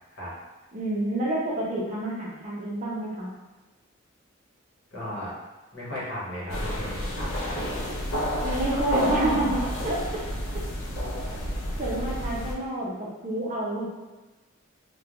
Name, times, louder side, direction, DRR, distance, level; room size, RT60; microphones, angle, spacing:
voice 1, 0.7-3.3 8.4-10.2 11.8-13.9, right 1 dB, 35° right, -5 dB, 0.5 m, -28 dB
voice 2, 4.9-5.3 5.7-7.6, left 1 dB, 55° left, -8 dB, 1.0 m, -36 dB
sound 1, 6.5-12.5, equal, 85° left, 0.5 m, -30 dB
3.0 x 2.2 x 2.4 m, 1.2 s
head